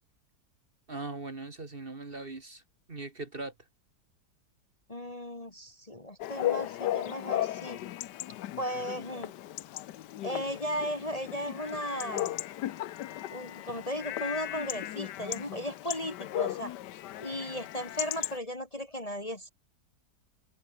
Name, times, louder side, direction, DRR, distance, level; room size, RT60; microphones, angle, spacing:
voice 1, 0.9-2.6 2.9-3.5, right 3 dB, 35° right, 2.0 m, -40 dB
voice 2, 4.9-7.8 8.6-9.3 10.2-12.3 13.3-16.7 17.2-19.5, equal, 20° left, 1.7 m, -36 dB
Chatter / Bark / Livestock farm animals working animals, 6.2-18.4, left 13 dB, 90° left, 1.4 m, -36 dB
omnidirectional pair, 1.8 m